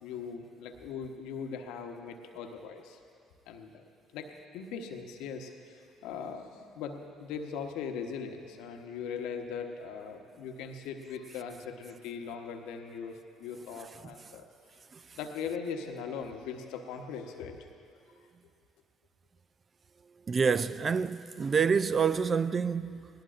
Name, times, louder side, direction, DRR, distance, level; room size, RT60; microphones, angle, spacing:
voice 1, 0.0-3.0 3.5-3.8 4.1-14.5 15.1-17.7, left 6 dB, 70° left, 1.0 m, -40 dB
voice 2, 20.3-23.1, right 6 dB, 40° right, 0.4 m, -27 dB
19.5 x 18.0 x 2.5 m
hypercardioid pair, 55°, 0 cm